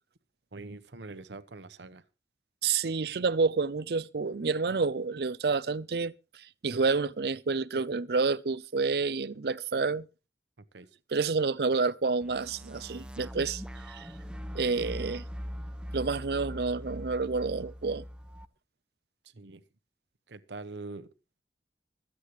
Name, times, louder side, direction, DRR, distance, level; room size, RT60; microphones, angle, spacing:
voice 1, 0.5-2.0 10.7-10.9 19.3-19.6 20.3-21.1, right 3 dB, 85° right, 1.0 m, -43 dB
voice 2, 2.6-6.1 6.6-10.0 11.1-13.6 13.9-14.1 14.5-15.2 15.9-18.0, right 4 dB, 60° right, 0.6 m, -29 dB
sound 1, 12.2-18.4, equal, 5° right, 0.5 m, -41 dB
25.0 x 8.4 x 3.1 m
head